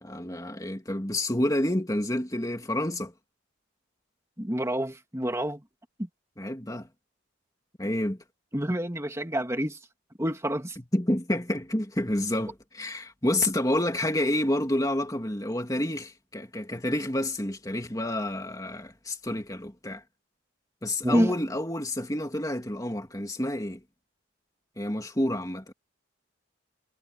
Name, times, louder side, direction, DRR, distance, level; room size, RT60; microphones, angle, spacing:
voice 1, 0.0-3.1 6.4-6.9 7.8-8.2 10.8-20.0 20.8-23.8 24.8-25.7, left 1 dB, 15° left, 2.7 m, -29 dB
voice 2, 4.4-5.6 8.5-9.8 10.2-10.8 21.0-21.3, equal, 15° right, 2.6 m, -27 dB
head